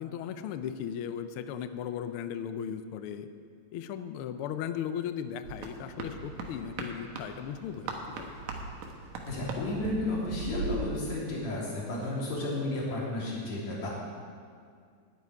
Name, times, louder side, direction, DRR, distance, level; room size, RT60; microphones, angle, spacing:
voice 1, 0.0-3.3 3.7-8.3, left 8 dB, 90° left, 10 dB, 1.2 m, -37 dB
sound 1, 5.4-10.9, right 3 dB, 75° right, 2.6 m, -39 dB
voice 2, 9.3-13.9, left 2 dB, 65° left, -5 dB, 4.4 m, -32 dB
11.5 x 8.5 x 9.7 m, 2.2 s
omnidirectional pair, 3.3 m